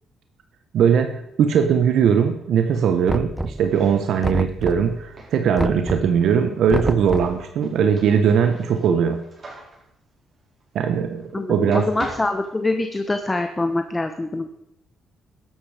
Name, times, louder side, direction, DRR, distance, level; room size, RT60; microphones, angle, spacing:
voice 1, 0.7-9.2 10.7-11.8, right 7 dB, 75° right, 6 dB, 1.2 m, -20 dB
Knock, 3.1-3.8 4.2-5.0 5.6-6.2 6.7-7.4, right 1 dB, 5° right, 0.4 m, -27 dB
sound 1, 3.6-11.4 11.7-13.3, right 2 dB, 40° right, 4.4 m, -43 dB
voice 2, 11.3-14.5, left 2 dB, 20° left, 7 dB, 1.0 m, -24 dB
14.0 x 11.0 x 5.0 m, 0.83 s
cardioid pair, 90°, 0 cm